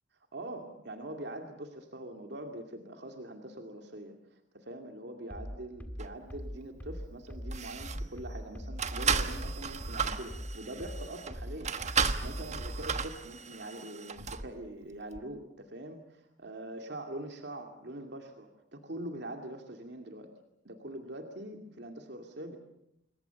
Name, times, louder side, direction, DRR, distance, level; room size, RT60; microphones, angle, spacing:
voice 1, 0.3-20.3 20.6-22.6, right 1 dB, 60° right, 4 dB, 2.3 m, -43 dB
sound 1, 5.3-13.1, equal, 10° left, 1.7 m, -41 dB
sound 2, 6.0-6.1 7.0-7.1 7.4-8.1 8.8-14.5 15.1-15.2, right 5 dB, 35° right, 1.3 m, -34 dB
28.0 x 22.0 x 7.1 m, 0.80 s
head